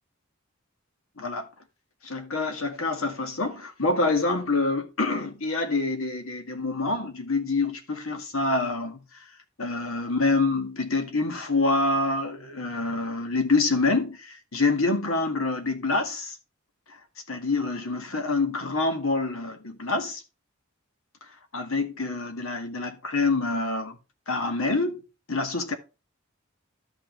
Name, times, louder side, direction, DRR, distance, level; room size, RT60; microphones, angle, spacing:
voice 1, 2.0-9.0 9.6-16.4 16.9-17.0 17.3-20.2 21.5-24.0 24.3-25.0 25.3-25.7, left 3 dB, 85° left, 1.9 m, -26 dB
12.5 x 5.8 x 3.2 m
head